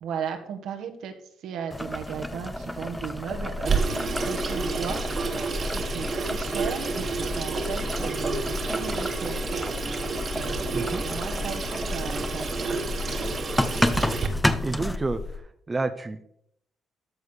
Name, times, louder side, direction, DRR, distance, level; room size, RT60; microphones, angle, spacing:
voice 1, 0.0-1.1 1.4-5.0 5.5-13.4, right 7 dB, 80° right, 5 dB, 1.8 m, -36 dB
Boiling, 1.7-15.0, left 1 dB, 5° left, 0.8 m, -32 dB
sound 1, 3.3-15.4, left 4 dB, 50° left, 2.1 m, -36 dB
Water tap faucet / Sink (filling or washing), 3.6-14.3, right 4 dB, 45° right, 1.8 m, -30 dB
voice 2, 14.6-15.2 15.7-16.2, right 3 dB, 25° right, 9 dB, 0.8 m, -29 dB
13.5 x 4.7 x 6.7 m, 0.70 s
cardioid pair, 90°, 0 cm